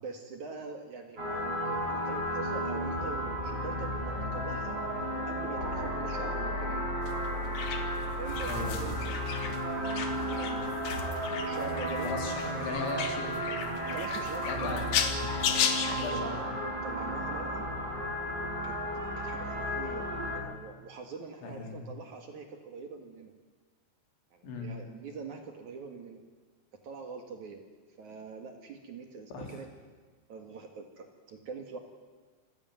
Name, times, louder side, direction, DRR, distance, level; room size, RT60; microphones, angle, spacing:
voice 1, 0.0-4.8 5.3-6.8 8.2-12.1 13.8-14.9 15.9-16.4 16.8-17.6 18.6-18.7 19.2-23.3 24.3-26.2 26.8-27.6 28.0-29.7 30.3-31.8, right 4 dB, 50° right, 5 dB, 2.7 m, -43 dB
sound 1, 1.2-20.4, equal, 20° right, 6.7 m, -33 dB
sound 2, 7.0-16.1, left 8 dB, 60° left, 2.8 m, -35 dB
voice 2, 8.4-8.8 11.5-11.6 12.0-13.7 14.5-14.9 16.0-16.3 21.4-21.9 24.4-24.7 29.3-29.7, left 3 dB, 90° left, 3 dB, 5.9 m, -38 dB
27.0 x 15.5 x 9.3 m, 1.5 s
omnidirectional pair, 5.1 m